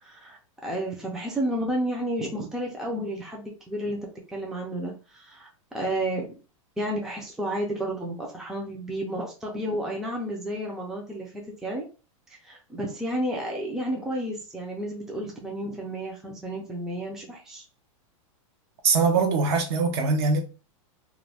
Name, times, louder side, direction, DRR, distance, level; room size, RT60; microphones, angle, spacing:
voice 1, 0.0-6.2 6.8-11.8 12.4-17.6, right 1 dB, 5° right, 0.5 m, -31 dB
voice 2, 18.8-20.4, right 4 dB, 50° right, 0.8 m, -22 dB
2.5 x 2.1 x 3.3 m
supercardioid pair, 145°, 17 cm